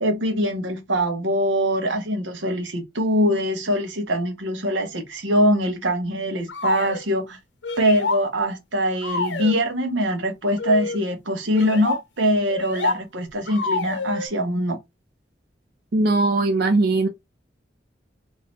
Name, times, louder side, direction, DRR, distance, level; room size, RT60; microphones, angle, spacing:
voice 1, 0.0-7.4 7.8-14.8, equal, 85° right, 1.1 m, -23 dB
sound 1, 6.5-7.0 7.6-8.2 9.0-9.6 10.6-11.0 11.5-12.0 12.5-13.0 13.5-14.3, left 4 dB, 75° left, 0.7 m, -27 dB
voice 2, 15.9-17.1, right 2 dB, 55° right, 0.4 m, -19 dB
3.1 x 2.8 x 3.2 m
head